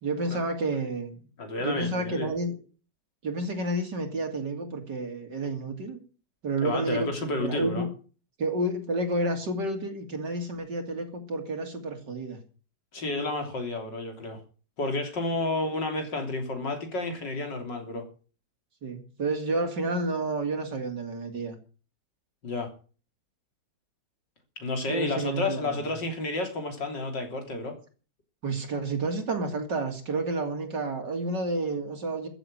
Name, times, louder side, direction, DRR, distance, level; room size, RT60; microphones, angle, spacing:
voice 1, 0.0-1.2 1.6-2.6 3.2-6.0 6.4-7.9 8.4-12.4 18.8-21.6 24.9-25.7 28.4-32.3, right 2 dB, 70° right, 3.5 m, -30 dB
voice 2, 1.4-2.3 6.6-7.9 12.9-14.4 14.8-18.1 22.4-22.7 24.6-27.8, left 2 dB, 75° left, 3.8 m, -31 dB
14.0 x 8.0 x 8.9 m
omnidirectional pair, 1.9 m